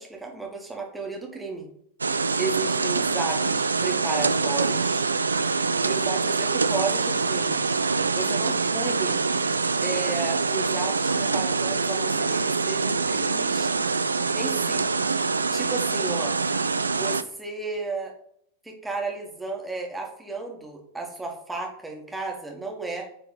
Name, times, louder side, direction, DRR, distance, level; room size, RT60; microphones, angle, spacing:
voice 1, 0.0-1.7 2.4-5.1 5.8-7.6 8.1-9.2 9.8-13.7 14.3-14.9 15.5-16.4 16.9-18.1 18.6-23.1, right 3 dB, 5° right, 0 dB, 1.7 m, -33 dB
sound 1, 2.0-17.2, right 4 dB, 75° right, 0.3 m, -25 dB
8.4 x 3.8 x 3.9 m, 0.70 s
figure-of-eight pair, 90°, 0 cm